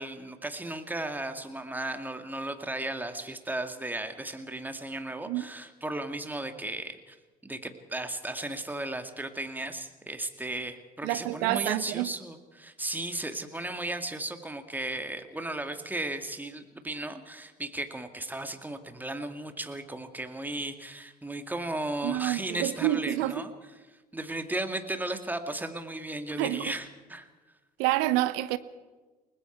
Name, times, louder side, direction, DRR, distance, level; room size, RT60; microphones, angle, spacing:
voice 1, 0.0-7.2 7.4-23.5 24.1-27.3, right 2 dB, 10° right, 2.3 m, -35 dB
voice 2, 11.0-12.1 22.0-23.4 26.4-26.7 27.8-28.6, right 15 dB, 60° right, 1.1 m, -28 dB
29.0 x 20.0 x 4.7 m
figure-of-eight pair, 55°, 20 cm